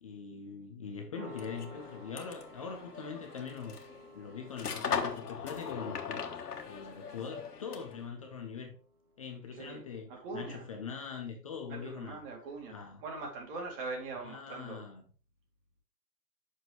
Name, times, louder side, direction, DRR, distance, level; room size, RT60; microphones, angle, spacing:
voice 1, 0.0-3.7 4.1-6.3 6.6-8.8 9.2-12.2 12.7-13.0 14.2-15.0, left 6 dB, 20° left, 0.5 m, -42 dB
sound 1, 1.1-9.5, right 1 dB, 60° right, 2.0 m, -55 dB
sound 2, 1.3-8.1, left 6 dB, 65° left, 1.5 m, -40 dB
voice 2, 10.1-10.6 11.7-14.8, right 3 dB, 35° right, 2.4 m, -42 dB
7.8 x 6.4 x 3.2 m
figure-of-eight pair, 120°, 49 cm